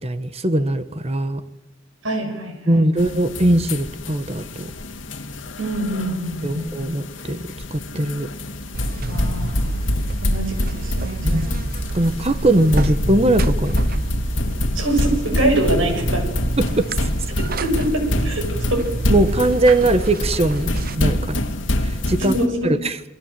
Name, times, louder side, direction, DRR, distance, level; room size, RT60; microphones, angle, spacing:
voice 1, 0.0-1.4 2.7-4.7 6.4-8.3 11.2-11.5 11.9-13.8 16.6-17.1 19.1-21.4 21.8-22.3 22.6-23.0, right 1 dB, 30° right, 12 dB, 1.4 m, -20 dB
voice 2, 2.0-3.1 5.6-6.7 9.1-9.9 10.2-11.6 14.7-16.3 17.4-18.9 22.2-22.7, right 1 dB, 80° right, 5 dB, 7.4 m, -24 dB
sound 1, 3.0-22.5, left 1 dB, 70° left, 2.4 m, -25 dB
Buzz, 8.7-21.0, right 2 dB, 50° right, 0.9 m, -30 dB
28.5 x 21.0 x 7.7 m, 0.92 s
head